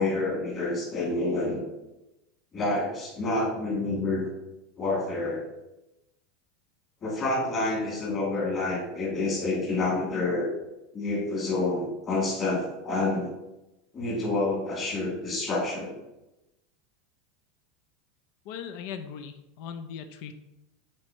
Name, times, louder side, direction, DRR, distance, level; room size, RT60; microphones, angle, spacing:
voice 1, 0.0-1.6 2.5-4.3 4.8-5.4 7.0-10.5 10.9-13.3 13.9-15.9, left 2 dB, 25° left, -3 dB, 2.4 m, -28 dB
voice 2, 18.5-20.3, left 7 dB, 55° left, 9 dB, 0.5 m, -39 dB
8.8 x 4.3 x 2.9 m, 0.94 s
supercardioid pair, 155°, 0 cm